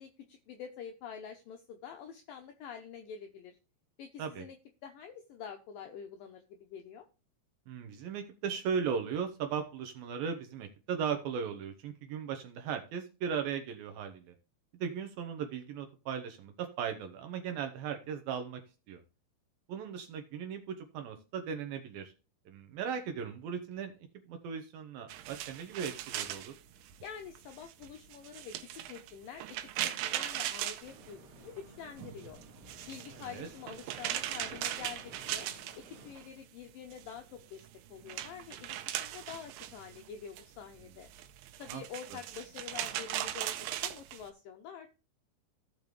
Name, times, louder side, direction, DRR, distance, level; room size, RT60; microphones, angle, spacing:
voice 1, 0.0-3.6 4.0-4.6 4.8-7.1 27.0-29.6 29.8-32.4 32.8-35.5 35.7-41.1 41.6-44.9, left 7 dB, 80° left, 5 dB, 2.0 m, -47 dB
voice 2, 7.7-14.2 14.8-18.6 18.9-19.0 19.7-22.1 22.5-26.5 33.1-33.5 41.7-41.8, right 7 dB, 75° right, 6 dB, 2.3 m, -37 dB
sound 1, 25.1-31.6 31.9-36.3 36.6-44.3, right 12 dB, 90° right, 3.1 m, -39 dB
sound 2, 30.8-36.1, right 2 dB, 30° right, 2.0 m, -53 dB
16.0 x 5.3 x 3.2 m, 0.33 s
omnidirectional pair, 5.0 m